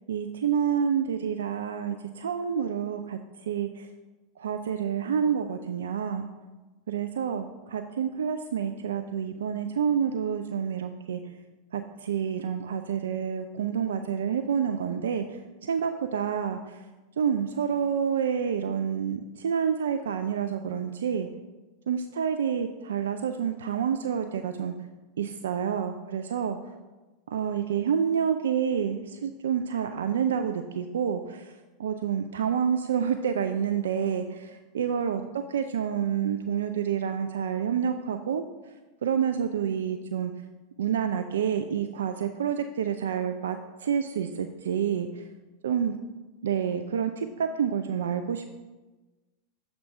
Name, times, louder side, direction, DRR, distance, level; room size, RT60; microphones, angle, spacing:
voice 1, 0.1-3.9 4.4-6.3 6.9-11.2 11.7-15.2 15.6-16.8 17.2-21.3 21.9-24.7 25.2-26.6 27.3-31.5 31.8-35.2 35.5-38.4 39.0-40.3 40.8-45.2 45.6-46.0 46.4-48.5, right 7 dB, 70° right, 7 dB, 0.3 m, -28 dB
7.3 x 3.6 x 4.8 m, 1.2 s
figure-of-eight pair, 90°, 0 cm